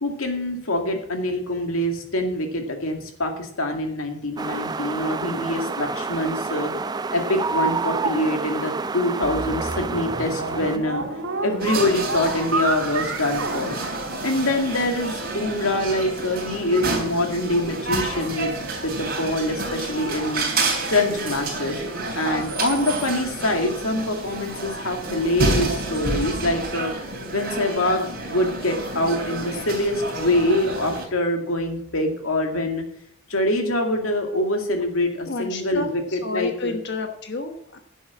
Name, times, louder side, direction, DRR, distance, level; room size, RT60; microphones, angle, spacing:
voice 1, 0.0-6.7 7.1-11.0 11.4-13.8 14.2-20.4 20.9-21.8 22.2-26.9 27.3-32.8 33.3-36.8, left 1 dB, 90° left, 3 dB, 2.3 m, -25 dB
sound 1, 4.4-10.8, right 4 dB, 20° right, 0.4 m, -28 dB
sound 2, 9.2-14.7, right 3 dB, 75° right, 2.1 m, -30 dB
sound 3, 11.6-31.0, right 2 dB, 50° right, 3.4 m, -29 dB
voice 2, 35.3-37.8, left 3 dB, 55° left, 6 dB, 1.1 m, -31 dB
11.0 x 7.2 x 7.2 m, 0.69 s
head